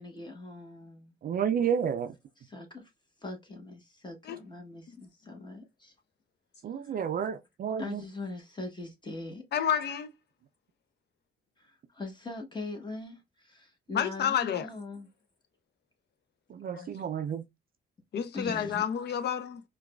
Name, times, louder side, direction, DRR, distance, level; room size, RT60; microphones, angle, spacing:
voice 1, 0.0-1.1 2.4-2.8 3.2-5.9 6.8-7.1 7.8-9.4 11.6-15.1 18.3-18.8, left 2 dB, 20° left, 1.1 m, -41 dB
voice 2, 1.2-2.1 6.6-8.0 16.5-17.4, right 8 dB, 45° right, 0.4 m, -30 dB
voice 3, 9.5-10.1 13.9-14.7 16.7-16.9 18.1-19.6, left 8 dB, 60° left, 0.6 m, -30 dB
4.6 x 2.3 x 2.2 m
cardioid pair, 90°, 20 cm